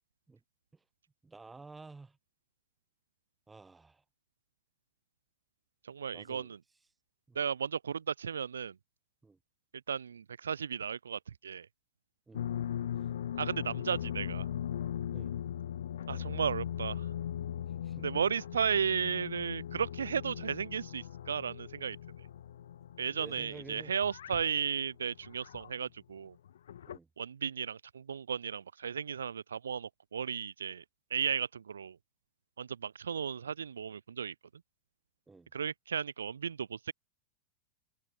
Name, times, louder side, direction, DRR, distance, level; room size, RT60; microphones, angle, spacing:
voice 1, 1.2-2.2 3.5-4.0 6.1-6.5 7.3-7.4 9.2-9.4 12.3-12.5 15.1-15.4 17.8-18.0 23.1-23.9 26.9-27.1 35.3-35.5, right 3 dB, 10° right, 2.1 m, -51 dB
voice 2, 5.8-6.6 7.3-8.8 9.9-11.7 13.4-14.5 16.1-17.1 18.0-22.0 23.0-26.3 27.2-30.8 31.1-32.0 32.6-34.3 35.5-36.9, right 7 dB, 70° right, 0.4 m, -34 dB
sound 1, 12.3-25.8 26.5-27.0, left 10 dB, 65° left, 0.7 m, -39 dB
open air
figure-of-eight pair, 90°, 0 cm